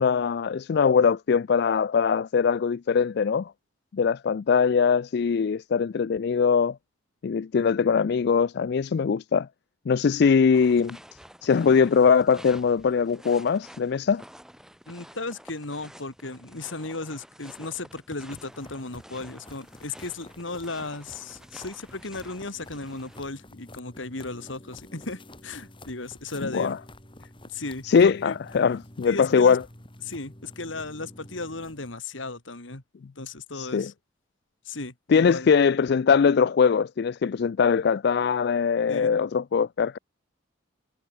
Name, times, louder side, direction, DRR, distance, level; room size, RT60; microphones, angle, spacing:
voice 1, 0.0-3.5 3.9-6.8 7.2-9.5 9.9-11.0 11.4-14.2 26.4-26.8 27.8-29.6 33.5-33.9 35.1-40.0, left 6 dB, 55° left, 0.4 m, -22 dB
sound 1, 10.5-23.2, equal, 5° right, 3.3 m, -49 dB
voice 2, 14.9-26.8 27.2-28.4 29.0-29.6 30.0-32.8 33.2-33.9 34.6-35.5 38.9-39.1, left 3 dB, 75° left, 2.9 m, -36 dB
sound 2, 18.2-31.9, left 1 dB, 25° left, 4.2 m, -49 dB
head